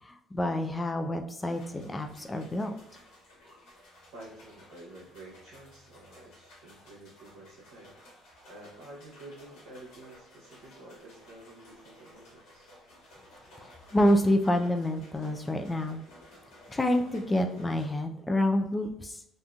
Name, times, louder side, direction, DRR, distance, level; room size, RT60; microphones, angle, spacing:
voice 1, 0.0-2.7 13.6-16.0 16.7-19.2, left 1 dB, 20° left, 4 dB, 0.4 m, -28 dB
sound 1, 1.5-17.9, left 1 dB, 80° left, 1.5 m, -55 dB
voice 2, 4.1-7.9 8.5-12.7, right 1 dB, 85° right, -5 dB, 0.8 m, -49 dB
3.5 x 2.5 x 2.3 m, 0.74 s
supercardioid pair, 65°, 0 cm